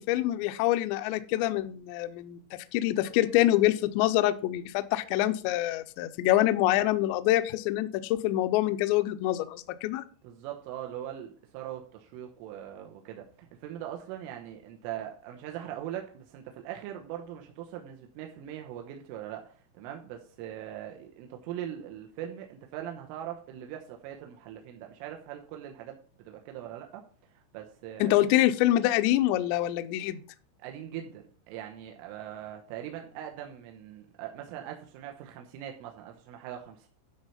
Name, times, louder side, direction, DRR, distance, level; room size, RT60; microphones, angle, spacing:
voice 1, 0.0-2.4 2.7-10.0 28.0-30.2, left 14 dB, 80° left, 10 dB, 2.5 m, -25 dB
voice 2, 10.2-27.0 27.4-28.3 30.6-36.9, right 11 dB, 85° right, 3 dB, 3.5 m, -41 dB
12.5 x 4.4 x 5.6 m, 0.41 s
omnidirectional pair, 5.7 m